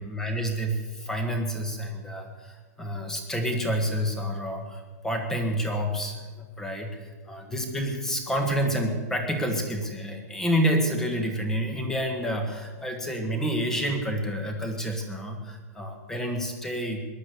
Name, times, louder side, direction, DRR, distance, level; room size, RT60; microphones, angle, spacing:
voice 1, 0.0-17.0, equal, 5° left, 4 dB, 1.5 m, -29 dB
18.5 x 11.5 x 6.8 m, 1.4 s
hypercardioid pair, 170°, 10 cm